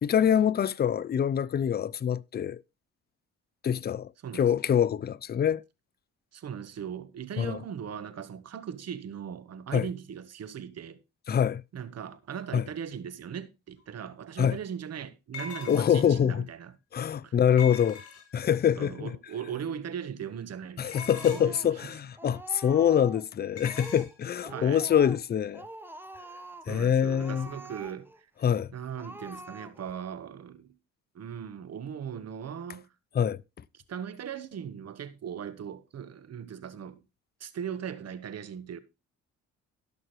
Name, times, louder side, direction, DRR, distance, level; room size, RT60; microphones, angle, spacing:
voice 1, 0.0-2.6 3.6-5.6 7.4-7.6 9.7-9.9 11.3-11.6 12.5-12.6 14.4-14.6 15.7-16.5 16.9-18.0 18.3-19.1 20.8-25.6 26.7-27.5 28.4-28.7 33.1-33.4, left 8 dB, 35° left, 0.5 m, -25 dB
voice 2, 6.3-11.0 11.7-16.7 17.2-17.4 18.7-21.0 21.3-21.6 24.5-24.9 26.7-28.3 28.7-30.8 31.1-32.9 33.9-37.0 37.4-38.8, right 8 dB, 55° right, 1.2 m, -39 dB
sound 1, 13.8-13.9 15.3-16.2 17.6-18.5 20.9-21.6 23.6-24.1, left 6 dB, 55° left, 4.7 m, -41 dB
Speech, 20.9-21.9 22.2-23.3 23.7-24.2 24.4-25.3 25.5-26.7 27.1-28.2 28.6-28.7 29.0-30.0, right 1 dB, 5° right, 1.1 m, -45 dB
18.0 x 6.0 x 3.1 m
cardioid pair, 90°, 30 cm